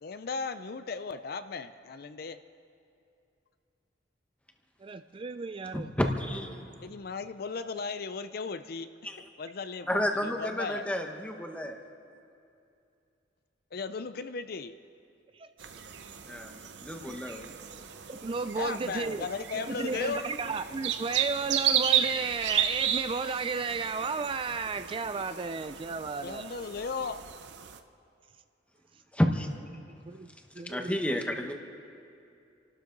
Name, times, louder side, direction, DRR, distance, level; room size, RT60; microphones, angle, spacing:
voice 1, 0.0-2.4 6.8-10.9 13.7-14.7 18.6-20.2 26.2-27.2, left 4 dB, 55° left, 11 dB, 0.5 m, -36 dB
voice 2, 4.8-5.9 15.3-15.5 17.1-17.2 18.1-26.5 30.1-30.3 30.5-31.3, right 4 dB, 30° right, 11 dB, 0.4 m, -34 dB
voice 3, 5.7-6.7 9.0-9.2 9.9-11.8 16.3-17.5 29.1-29.5 30.6-31.5, equal, 5° left, 3 dB, 1.1 m, -31 dB
sound 1, 15.6-27.8, right 9 dB, 70° right, 0.7 m, -33 dB
30.0 x 12.5 x 3.9 m, 2.6 s
head